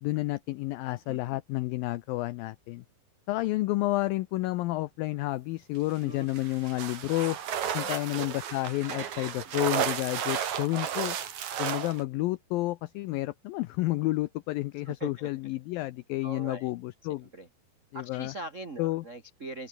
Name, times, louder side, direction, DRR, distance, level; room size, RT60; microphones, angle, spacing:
voice 1, 0.0-2.8 3.3-7.4 7.7-11.2 11.6-17.3 17.9-18.3 18.8-19.0, left 18 dB, 90° left, 2.0 m, -30 dB
voice 2, 1.0-1.4 6.0-6.3 7.8-8.0 9.4-9.5 14.8-15.3 16.2-16.7 17.2-17.5 17.9-19.7, right 2 dB, 75° right, 0.7 m, -41 dB
sound 1, 6.3-12.0, right 9 dB, 50° right, 2.9 m, -33 dB
open air
omnidirectional pair, 4.9 m